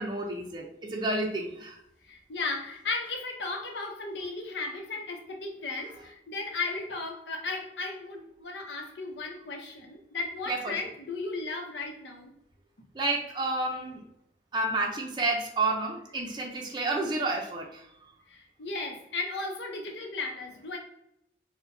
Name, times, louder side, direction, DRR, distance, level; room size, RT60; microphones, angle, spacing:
voice 1, 0.0-1.8 10.5-10.7 12.9-14.0 14.5-17.9, right 2 dB, 25° right, 0 dB, 0.5 m, -30 dB
voice 2, 2.0-12.3 18.3-20.8, left 3 dB, 80° left, 2 dB, 0.8 m, -35 dB
4.4 x 2.2 x 2.6 m, 0.77 s
head